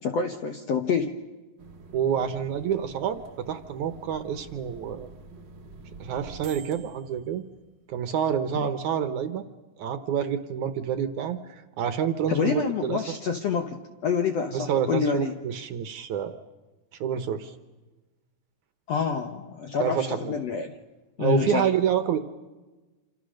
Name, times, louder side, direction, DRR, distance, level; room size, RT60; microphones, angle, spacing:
voice 1, 0.0-1.1 8.5-8.7 12.3-15.3 18.9-20.8 21.2-21.7, left 6 dB, 65° left, 5 dB, 1.6 m, -27 dB
sound 1, 1.6-8.0, right 3 dB, 50° right, 1.4 m, -47 dB
voice 2, 1.9-5.1 6.0-7.4 7.9-9.5 9.8-13.2 14.5-16.4 17.0-17.6 19.8-20.3 21.2-22.2, right 8 dB, 65° right, 9 dB, 2.1 m, -28 dB
27.5 x 27.5 x 6.5 m, 1.2 s
omnidirectional pair, 4.3 m